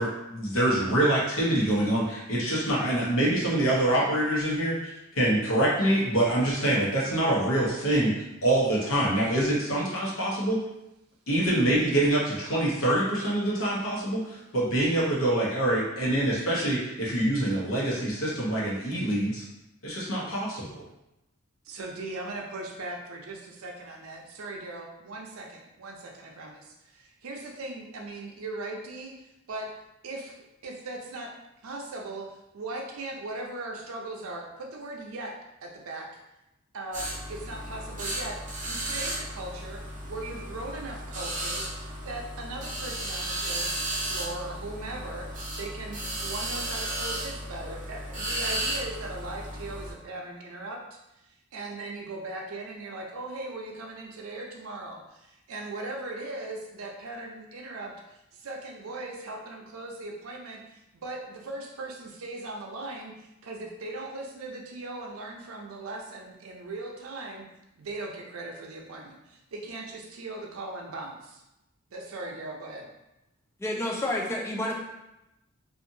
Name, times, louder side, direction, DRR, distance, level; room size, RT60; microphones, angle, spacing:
voice 1, 0.0-8.1 8.4-10.6 11.3-19.4 19.8-20.8, right 1 dB, 75° left, -5 dB, 0.9 m, -25 dB
voice 2, 21.6-29.7 30.0-30.4 30.6-31.3 31.6-35.3 35.6-36.1 36.7-38.4 38.6-50.8 51.5-67.4 67.8-71.4 71.9-72.9, right 2 dB, 85° right, 1 dB, 0.5 m, -39 dB
sound 1, 36.9-49.9, right 1 dB, 35° right, 0.6 m, -34 dB
voice 3, 73.6-74.7, left 1 dB, 10° left, -2 dB, 0.3 m, -29 dB
2.7 x 2.5 x 2.6 m, 0.90 s
head